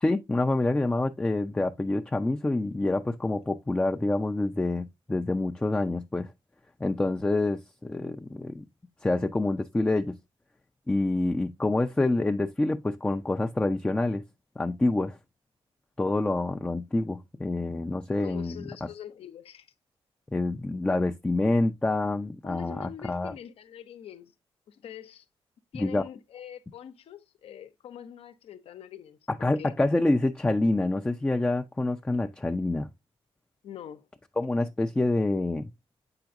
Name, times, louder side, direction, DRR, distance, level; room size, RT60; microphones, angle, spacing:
voice 1, 0.0-6.3 6.8-8.7 9.0-10.2 10.9-14.2 14.6-15.2 16.0-18.9 20.3-23.3 25.7-26.0 29.3-32.9 34.4-35.7, left 2 dB, 10° left, 0.5 m, -27 dB
voice 2, 18.2-19.7 22.4-24.3 24.7-25.3 25.7-29.7 33.6-34.1, left 9 dB, 70° left, 0.8 m, -44 dB
7.7 x 5.8 x 2.5 m
cardioid pair, 90°, 10 cm